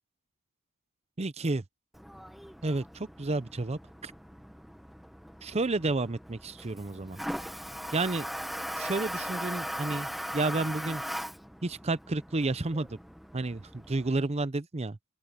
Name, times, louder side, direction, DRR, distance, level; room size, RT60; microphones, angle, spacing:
voice 1, 1.2-1.6 2.6-4.1 5.4-7.2 7.9-8.3 8.8-11.0 11.6-13.0 13.3-15.0, right 2 dB, 30° right, 0.7 m, -31 dB
Toilet flush, 1.9-14.2, equal, ahead, 1.5 m, -40 dB
open air
head